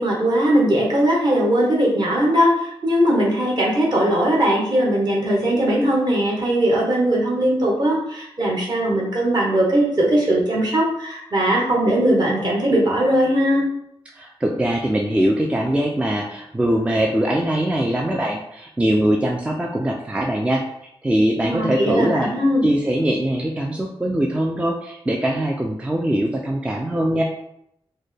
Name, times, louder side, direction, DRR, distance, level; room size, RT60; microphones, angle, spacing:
voice 1, 0.0-13.6 21.4-22.6, right 1 dB, 45° right, -3 dB, 1.1 m, -19 dB
voice 2, 14.1-20.6 21.0-22.3 22.6-27.2, right 1 dB, 10° right, 0 dB, 0.3 m, -22 dB
4.2 x 2.1 x 3.2 m, 0.77 s
wide cardioid pair, 135°, 10 cm